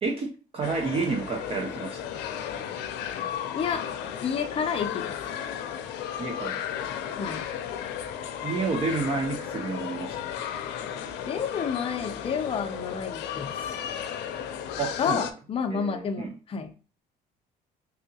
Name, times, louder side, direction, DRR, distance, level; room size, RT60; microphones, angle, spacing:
voice 1, 0.0-2.0 6.2-6.9 8.4-10.2 14.8-15.3 15.7-16.3, right 4 dB, 35° right, 2 dB, 0.6 m, -30 dB
sound 1, 0.6-15.3, left 9 dB, 85° left, 0.5 m, -34 dB
voice 2, 4.2-5.2 7.2-7.4 11.3-13.5 15.0-16.7, left 6 dB, 35° left, 6 dB, 0.5 m, -30 dB
3.4 x 2.8 x 2.7 m, 0.36 s
cardioid pair, 110°, 17 cm